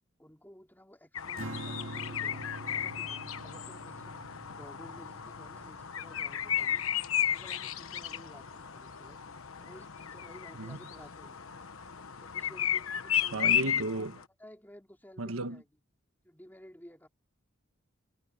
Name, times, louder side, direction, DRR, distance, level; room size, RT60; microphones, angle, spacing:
voice 1, 0.2-2.4 2.7-4.2 4.5-6.8 7.3-9.2 9.6-11.7 12.2-13.6 14.1-15.6 16.2-17.1, equal, 10° left, 3.7 m, -54 dB
sound 1, 1.1-14.2, left 9 dB, 80° left, 1.2 m, -34 dB
Strum, 1.4-7.8, right 1 dB, 70° right, 2.3 m, -45 dB
voice 2, 13.3-14.2 15.2-15.6, right 2 dB, 90° right, 1.3 m, -34 dB
head